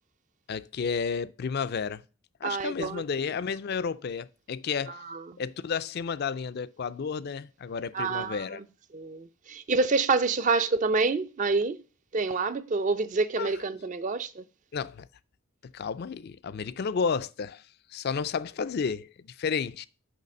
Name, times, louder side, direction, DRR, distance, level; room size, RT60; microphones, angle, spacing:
voice 1, 0.5-2.0 2.4-5.0 5.4-8.6 13.4-13.5 14.7-15.1 15.7-17.6 17.9-19.9, left 5 dB, 50° left, 0.4 m, -32 dB
voice 2, 2.4-3.0 4.9-5.4 7.9-8.6 8.9-11.8 12.1-14.4, right 4 dB, 35° right, 0.4 m, -27 dB
6.6 x 5.6 x 5.3 m
head